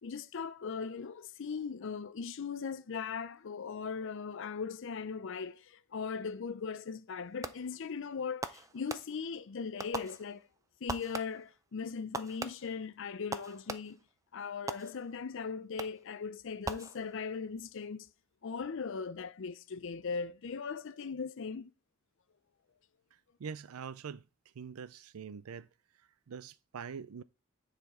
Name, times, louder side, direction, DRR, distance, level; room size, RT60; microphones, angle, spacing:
voice 1, 0.0-10.5 10.8-14.0 14.3-18.1 18.4-21.7, left 5 dB, 60° left, 0.5 m, -39 dB
Fireworks, 7.4-7.9 8.4-9.4 9.8-10.6 10.9-11.6 12.1-14.1 14.7-15.3 15.8-16.2 16.6-17.4, right 3 dB, 15° right, 0.4 m, -42 dB
voice 2, 23.4-24.3 24.5-25.7 26.0-27.2, right 6 dB, 90° right, 0.5 m, -44 dB
9.3 x 4.2 x 4.3 m
head